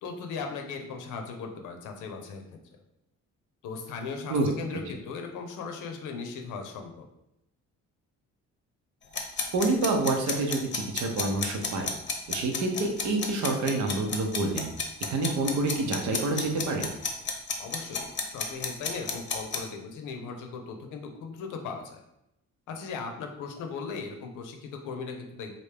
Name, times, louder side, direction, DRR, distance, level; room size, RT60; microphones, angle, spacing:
voice 1, 0.0-2.6 3.6-7.1 17.6-22.0 22.7-25.5, left 5 dB, 85° left, 4 dB, 0.7 m, -38 dB
sound 1, 9.1-19.6, left 5 dB, 40° left, 0.7 m, -31 dB
voice 2, 9.5-11.9 12.3-14.7 15.1-16.9, right 2 dB, 70° right, 3 dB, 0.7 m, -27 dB
3.2 x 2.6 x 3.3 m, 0.84 s
cardioid pair, 90°, 30 cm